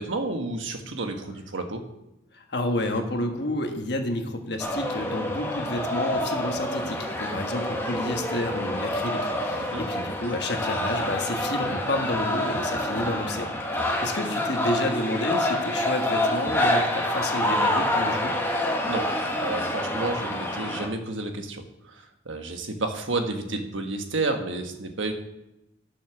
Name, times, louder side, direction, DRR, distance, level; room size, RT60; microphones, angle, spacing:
voice 1, 0.0-1.8 9.6-9.8 18.9-19.0 19.4-25.1, right 2 dB, 75° right, 5 dB, 1.3 m, -31 dB
voice 2, 2.3-18.4, left 1 dB, 55° left, 4 dB, 1.3 m, -30 dB
sound 1, 4.6-20.9, left 1 dB, 10° left, 1.1 m, -27 dB
9.7 x 7.1 x 6.0 m, 0.92 s
head